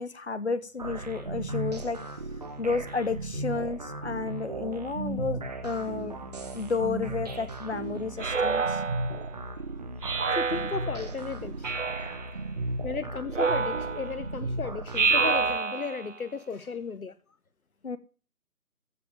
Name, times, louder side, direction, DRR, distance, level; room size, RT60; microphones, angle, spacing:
voice 1, 0.0-2.0 2.6-6.2 6.5-8.8 17.8-18.0, left 4 dB, 45° left, 1.2 m, -31 dB
sound 1, 0.8-15.6, right 2 dB, 25° right, 1.6 m, -36 dB
Speech synthesizer, 8.2-9.3 10.0-11.1 11.6-12.3 13.3-14.2 14.9-16.1, right 4 dB, 55° right, 0.6 m, -28 dB
voice 2, 10.3-11.7 12.8-17.2, left 5 dB, 70° left, 0.9 m, -35 dB
14.5 x 5.3 x 7.3 m
figure-of-eight pair, 155°, 45 cm